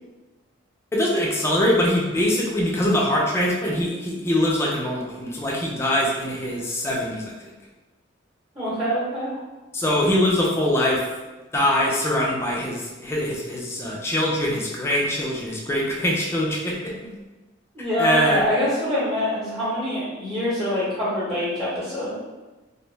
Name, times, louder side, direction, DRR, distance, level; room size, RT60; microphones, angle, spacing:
voice 1, 0.9-7.4 9.7-11.0 11.5-17.1 18.0-18.5, left 1 dB, 15° left, -3 dB, 0.4 m, -23 dB
voice 2, 8.5-9.3 17.7-22.1, equal, 25° right, -13 dB, 0.9 m, -25 dB
2.6 x 2.1 x 3.1 m, 1.2 s
head